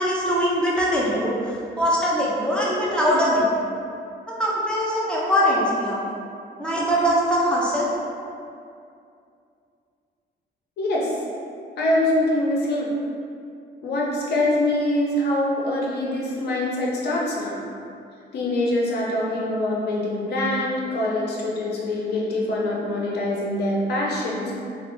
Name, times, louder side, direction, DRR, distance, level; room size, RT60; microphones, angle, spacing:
voice 1, 0.0-3.6 4.4-6.0 6.6-7.9, equal, 5° left, -7 dB, 0.3 m, -22 dB
voice 2, 10.8-11.2 11.8-12.9 13.8-17.6 18.3-24.5, left 1 dB, 65° left, -4 dB, 0.5 m, -24 dB
2.1 x 2.0 x 3.7 m, 2.5 s
wide cardioid pair, 175°, 18 cm